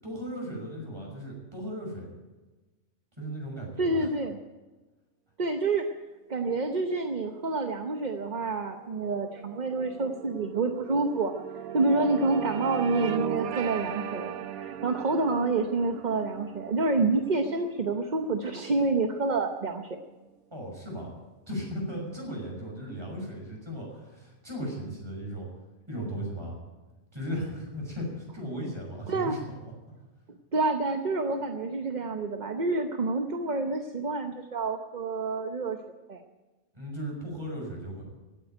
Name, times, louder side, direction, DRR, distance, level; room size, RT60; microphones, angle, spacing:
voice 1, 0.0-2.1 3.2-4.1 20.5-21.1 21.5-25.5 25.9-26.6 27.1-29.5 36.7-38.0, equal, 20° right, -1 dB, 6.2 m, -36 dB
voice 2, 3.8-4.4 5.4-5.8 6.3-11.3 11.7-19.9 29.1-29.4 30.3-35.8 36.1-36.2, right 3 dB, 35° right, 5 dB, 0.9 m, -28 dB
sound 1, 7.4-20.0, right 9 dB, 80° right, 1.2 m, -39 dB
16.0 x 9.6 x 9.3 m, 1.2 s
omnidirectional pair, 1.4 m